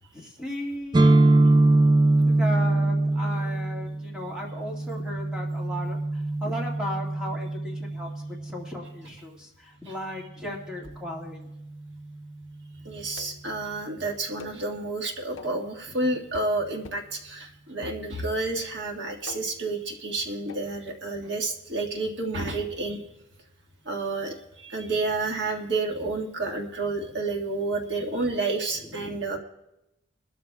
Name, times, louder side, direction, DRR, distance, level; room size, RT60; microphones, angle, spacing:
voice 1, 0.1-1.3 2.3-11.5 22.8-23.0 29.0-29.2, left 1 dB, 5° right, -3 dB, 2.0 m, -36 dB
sound 1, 0.9-8.7, right 2 dB, 20° right, 0.4 m, -23 dB
voice 2, 12.9-23.0 23.9-29.4, right 2 dB, 55° right, 1 dB, 1.8 m, -30 dB
sound 2, 13.2-13.5 14.4-14.7 15.4-15.7 16.3-16.6 16.8-17.1 17.8-18.4 19.3-19.7 20.5-20.7, left 3 dB, 70° left, 0.7 m, -45 dB
23.0 x 13.0 x 2.4 m, 0.89 s
head